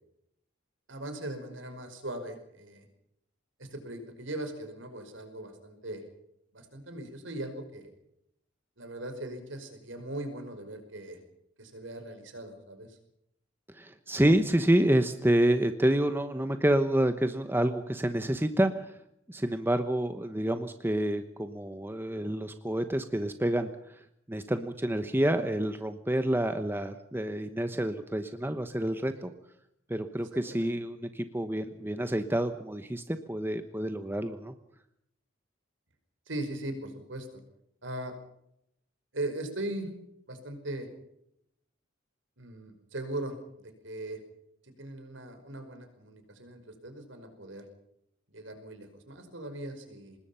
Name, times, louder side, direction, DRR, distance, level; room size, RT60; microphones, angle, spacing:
voice 1, 0.9-2.8 3.6-6.0 6.5-7.9 8.8-11.2 11.6-13.0 29.2-29.3 30.5-30.7 36.3-37.3 37.8-38.1 39.1-39.9 40.3-40.9 42.4-43.3 43.8-44.2 44.6-47.6 48.3-50.2, right 1 dB, 70° right, 7 dB, 5.2 m, -39 dB
voice 2, 13.7-19.0 19.3-24.0 24.3-29.3 29.9-34.5, right 1 dB, 10° right, 9 dB, 1.0 m, -28 dB
25.5 x 20.5 x 5.7 m, 0.77 s
head